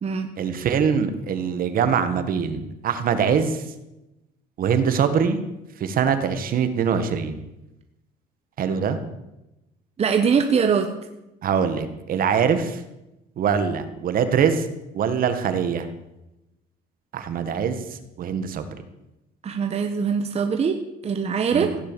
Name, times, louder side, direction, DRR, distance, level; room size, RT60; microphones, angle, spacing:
voice 1, 0.4-3.6 4.6-5.4 5.8-7.4 8.6-9.0 11.4-12.8 13.4-14.7 14.9-15.9 17.1-17.8 18.2-18.7 21.5-21.8, right 7 dB, 60° right, 9 dB, 1.8 m, -23 dB
voice 2, 10.0-10.9 19.4-21.7, right 6 dB, 40° right, 6 dB, 1.4 m, -22 dB
16.0 x 10.0 x 7.0 m, 0.93 s
cardioid pair, 110°, 17 cm